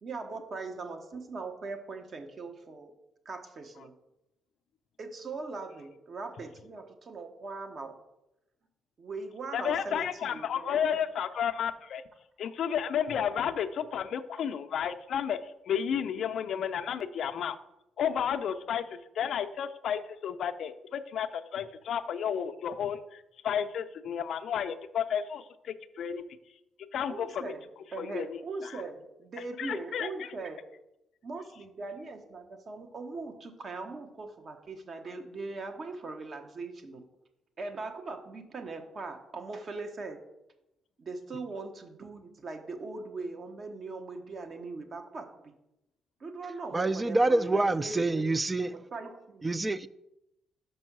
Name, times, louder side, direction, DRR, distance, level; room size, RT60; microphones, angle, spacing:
voice 1, 0.0-2.9 3.2-3.9 5.0-8.0 9.0-11.0 27.1-27.6 27.9-30.6 31.2-37.0 37.6-40.2 41.0-45.5 46.2-48.3 48.7-49.5, right 3 dB, 50° right, 5 dB, 1.1 m, -40 dB
voice 2, 9.5-12.0 12.4-15.4 15.7-17.6 18.0-26.2 26.9-27.4 28.0-28.8 29.6-30.3, left 8 dB, 65° left, 10 dB, 0.5 m, -32 dB
voice 3, 46.7-48.7 49.4-49.9, right 2 dB, 20° right, 16 dB, 0.4 m, -26 dB
5.4 x 5.3 x 6.0 m, 0.88 s
cardioid pair, 80°, 0 cm